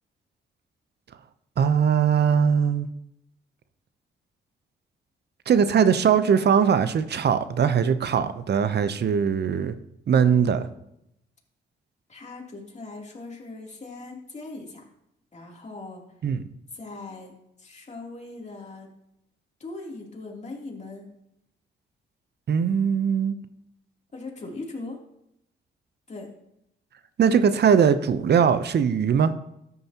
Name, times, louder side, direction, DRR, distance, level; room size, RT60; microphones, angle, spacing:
voice 1, 1.6-2.9 5.5-9.7 10.1-10.7 16.2-16.4 22.5-23.4 27.2-29.3, right 7 dB, 60° right, 12 dB, 0.8 m, -20 dB
voice 2, 10.2-10.8 12.1-14.9 15.3-16.0 16.7-17.3 17.6-18.9 19.6-21.1 24.1-25.0 26.1-26.3, left 3 dB, 35° left, -1 dB, 3.1 m, -40 dB
13.0 x 9.5 x 2.9 m, 0.81 s
cardioid pair, 65°, 20 cm